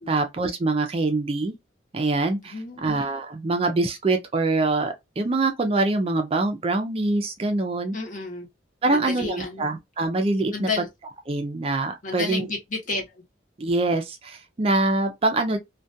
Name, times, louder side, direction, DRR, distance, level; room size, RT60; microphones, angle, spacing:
voice 1, 0.1-1.5 1.9-2.5 2.8-8.0 8.8-10.7 11.3-12.5 13.6-15.6, right 2 dB, 30° right, 0.4 m, -24 dB
voice 2, 2.4-2.9 7.9-8.5 8.9-9.7 10.5-10.9 12.0-13.2, left 3 dB, 45° left, 0.8 m, -31 dB
2.3 x 2.2 x 2.6 m
head